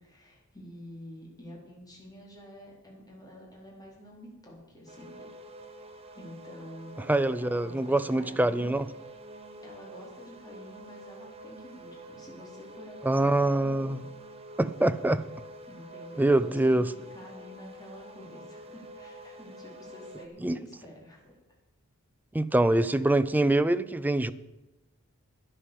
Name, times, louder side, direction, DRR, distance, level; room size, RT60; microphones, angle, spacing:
voice 1, 0.0-5.3 6.1-8.7 9.6-14.1 15.7-16.8 17.1-21.4, equal, 15° left, 4.1 m, -48 dB
sound 1, 4.9-20.3, right 1 dB, 30° right, 1.2 m, -47 dB
voice 2, 7.1-8.8 13.0-14.0 14.6-15.2 16.2-16.9 20.4-20.6 22.3-24.3, right 1 dB, 10° right, 0.5 m, -24 dB
11.5 x 10.5 x 7.2 m
head